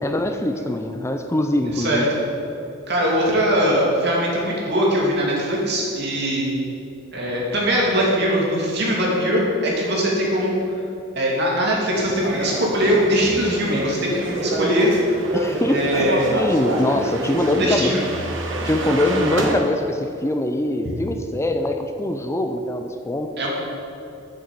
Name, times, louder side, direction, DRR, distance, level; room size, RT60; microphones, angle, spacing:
voice 1, 0.0-2.1 13.4-14.0 15.3-15.8 16.3-17.9 18.6-23.3, left 1 dB, 15° left, 6 dB, 0.5 m, -23 dB
voice 2, 2.9-6.5 7.1-10.5 11.1-15.0 15.7-16.3 17.3-18.0 23.4-23.5, equal, 60° right, -3 dB, 2.7 m, -21 dB
sound 1, 11.9-19.5, right 1 dB, 75° right, 1.5 m, -27 dB
8.5 x 7.4 x 7.4 m, 2.7 s
head